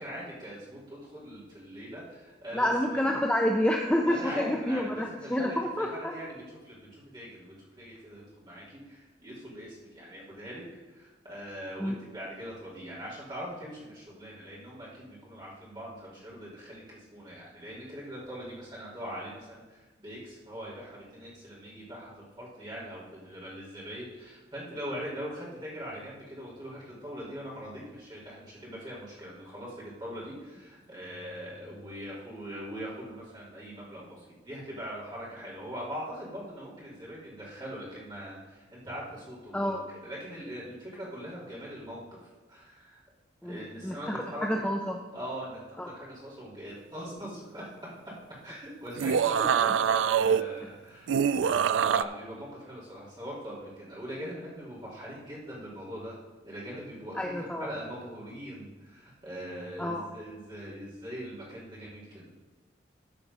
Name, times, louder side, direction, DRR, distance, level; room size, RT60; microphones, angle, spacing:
voice 1, 0.0-3.1 4.0-43.0 43.4-44.6 45.1-48.1 48.4-56.1 56.4-57.3 57.6-62.2, equal, 25° right, -8 dB, 3.4 m, -42 dB
voice 2, 2.5-5.9 11.8-12.0 39.5-39.8 43.4-45.0 45.8-45.9 57.2-57.7 59.8-60.0, left 1 dB, 5° left, 1 dB, 0.5 m, -28 dB
sound 1, 48.9-50.4 51.1-52.0, right 7 dB, 75° right, 0.3 m, -24 dB
13.5 x 5.0 x 5.5 m, 1.2 s
head